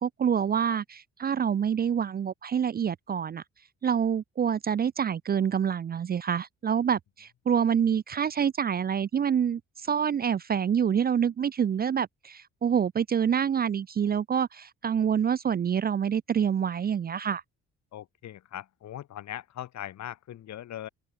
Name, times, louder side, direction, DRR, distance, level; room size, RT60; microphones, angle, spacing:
voice 1, 0.0-3.4 3.8-17.4, right 8 dB, 30° right, 0.4 m, -27 dB
voice 2, 17.9-20.9, left 12 dB, 65° left, 1.5 m, -40 dB
open air
cardioid pair, 90°, 30 cm